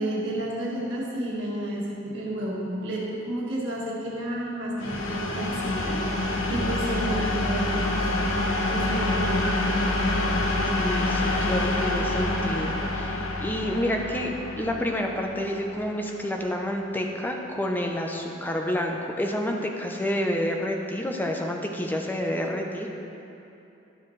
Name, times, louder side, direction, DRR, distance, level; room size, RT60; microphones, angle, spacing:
voice 1, 0.0-6.0 6.5-8.1 8.6-9.4, right 1 dB, 60° right, -6 dB, 1.9 m, -31 dB
sound 1, 4.8-16.4, left 1 dB, 85° left, 1.0 m, -27 dB
voice 2, 10.8-23.0, left 1 dB, 10° left, 1 dB, 0.7 m, -29 dB
12.5 x 7.1 x 3.3 m, 2.9 s
head